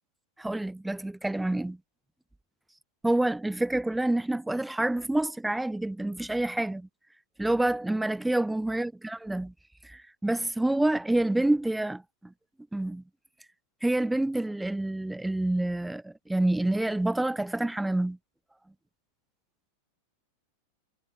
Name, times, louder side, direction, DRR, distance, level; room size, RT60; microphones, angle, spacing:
voice 1, 0.4-1.8 3.0-6.9 7.4-9.5 9.8-12.3 12.7-13.0 13.8-18.2, right 1 dB, 5° right, 0.3 m, -28 dB
figure-of-eight pair, 90°, 0 cm